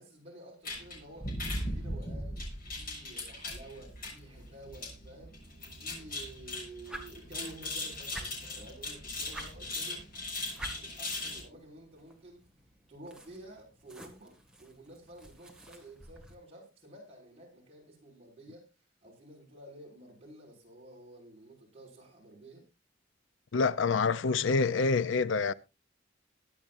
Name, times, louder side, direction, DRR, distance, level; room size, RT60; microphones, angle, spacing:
voice 1, 0.0-1.4 1.7-5.4 5.7-10.0 10.8-12.4 12.9-14.3 14.6-18.7 19.0-22.7, right 1 dB, 30° right, 6.0 m, -51 dB
sound 1, 0.6-11.4, left 1 dB, 50° left, 6.8 m, -39 dB
sound 2, 6.8-16.4, right 1 dB, 5° right, 1.9 m, -50 dB
voice 2, 23.5-25.5, left 4 dB, 70° left, 0.5 m, -27 dB
23.0 x 8.6 x 2.6 m
head